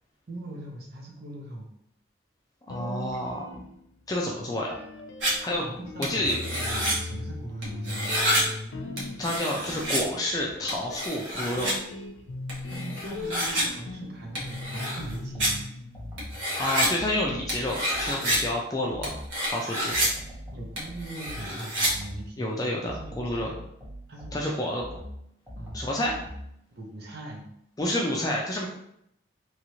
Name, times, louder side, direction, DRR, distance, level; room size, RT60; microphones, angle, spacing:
voice 1, 0.3-1.7 4.4-4.5 5.6-8.4 12.7-15.6 18.7-18.9 20.5-23.6 24.1-24.7 25.5-25.8 26.7-27.5, right 1 dB, 55° right, 0 dB, 0.7 m, -40 dB
sound 1, 2.7-4.2 4.7-16.9, left 2 dB, 85° left, 0.5 m, -39 dB
voice 2, 2.7-3.6 4.1-4.7 5.4-5.7 6.0-6.6 9.2-11.7 16.6-19.1 19.5-20.0 22.4-23.5 24.3-24.8 25.7-26.2 27.8-28.7, left 1 dB, 20° left, -2 dB, 0.4 m, -29 dB
sound 2, 5.2-5.3 6.0-6.9 7.6-8.4 9.0-10.0 10.7-11.7 12.5-13.6 14.4-15.1 15.4-15.5 16.2-16.9 17.5-18.4 19.0-20.1 20.8-21.9, equal, 85° right, 1.0 m, -28 dB
sound 3, 15.0-16.5 17.0-19.4 19.9-22.4 22.8-26.6, equal, 10° right, 0.8 m, -42 dB
3.1 x 2.5 x 3.0 m, 0.73 s
head